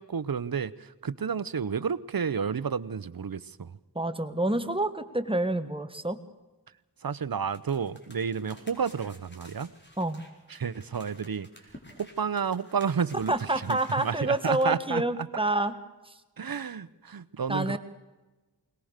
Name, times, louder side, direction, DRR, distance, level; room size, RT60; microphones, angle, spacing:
voice 1, 0.0-3.8 7.0-9.7 10.5-11.5 12.0-15.0 16.4-17.8, right 6 dB, 65° right, 17 dB, 0.8 m, -31 dB
voice 2, 4.0-6.2 10.0-10.2 13.3-15.7 16.1-16.2 17.5-17.8, right 1 dB, 15° right, 9 dB, 1.7 m, -28 dB
sound 1, 7.5-14.6, left 1 dB, 30° left, 4.4 m, -53 dB
22.0 x 19.0 x 6.6 m, 1.1 s
wide cardioid pair, 60°, 38 cm